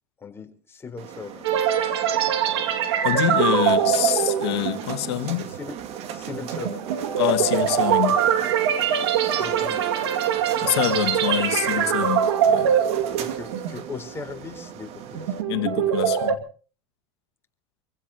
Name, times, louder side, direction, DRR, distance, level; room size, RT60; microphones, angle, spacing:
voice 1, 0.2-1.5 3.6-3.7 5.4-6.9 9.3-10.0 11.9-12.1 13.0-15.5, left 4 dB, 20° left, 4.2 m, -39 dB
sound 1, 1.0-15.4, right 9 dB, 50° right, 2.4 m, -38 dB
sound 2, 1.4-14.0 14.3-14.5 15.0-16.4, right 9 dB, 85° right, 2.2 m, -23 dB
voice 2, 3.0-5.5 7.2-8.2 10.6-12.7 15.5-16.4, left 15 dB, 85° left, 2.0 m, -26 dB
27.0 x 16.0 x 2.9 m
supercardioid pair, 115°, 13 cm